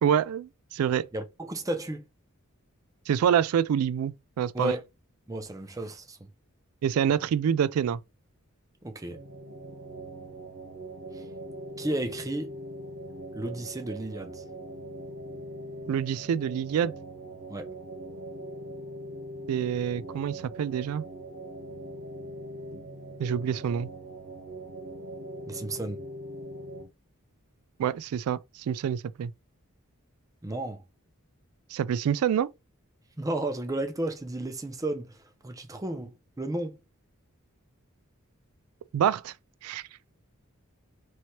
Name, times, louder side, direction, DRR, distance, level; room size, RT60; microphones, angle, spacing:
voice 1, 0.0-1.0 3.1-4.8 6.8-8.0 15.9-16.9 19.5-21.0 23.2-23.9 27.8-29.3 31.7-32.5 38.9-39.3 39.6-39.8, right 8 dB, 85° right, 0.3 m, -26 dB
voice 2, 1.1-2.1 4.5-4.8 5.3-6.2 8.8-9.2 11.1-11.2 11.8-12.5 13.3-14.5 17.5-17.7 25.5-26.0 30.4-30.8 33.2-36.8, right 1 dB, 15° right, 0.6 m, -33 dB
sound 1, 9.1-26.8, right 1 dB, 70° right, 1.7 m, -41 dB
3.1 x 2.8 x 4.3 m
head